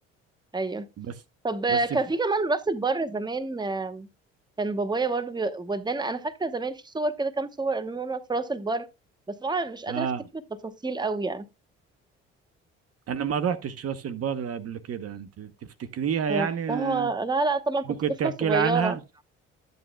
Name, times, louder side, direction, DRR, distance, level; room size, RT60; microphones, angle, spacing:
voice 1, 0.5-0.9 1.4-4.1 4.6-8.9 9.3-10.1 10.6-11.4 16.3-17.8 18.2-19.0, right 3 dB, 15° right, 1.0 m, -28 dB
voice 2, 9.9-10.3 13.1-15.5 15.8-17.1 17.9-19.0, right 7 dB, 50° right, 0.9 m, -29 dB
12.5 x 7.9 x 2.2 m
hypercardioid pair, 65°, 32 cm